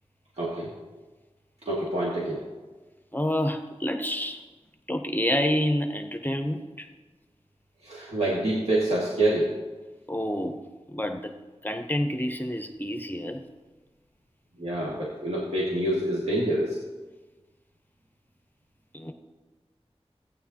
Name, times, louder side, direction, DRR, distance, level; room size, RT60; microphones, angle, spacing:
voice 1, 0.4-0.7 1.7-2.4 7.8-9.5 14.6-16.8, right 1 dB, 70° right, -7 dB, 2.1 m, -26 dB
voice 2, 3.1-4.4 4.9-6.9 10.1-10.6 10.9-11.3 11.6-13.4 18.9-19.1, equal, 15° left, 5 dB, 0.8 m, -28 dB
15.0 x 9.3 x 2.9 m, 1.2 s
wide cardioid pair, 55°, 11 cm